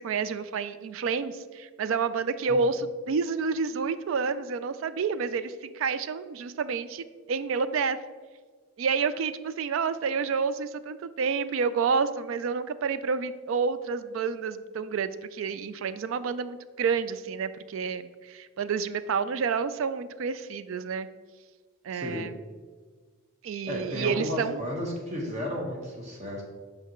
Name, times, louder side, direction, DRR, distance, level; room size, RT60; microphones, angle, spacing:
voice 1, 0.0-8.0 8.8-21.1 21.8-22.3 23.4-24.6, right 5 dB, 75° right, 13 dB, 0.3 m, -29 dB
voice 2, 21.9-22.3 23.7-26.4, left 1 dB, 35° right, -2 dB, 1.3 m, -33 dB
8.1 x 5.2 x 3.0 m, 1.5 s
head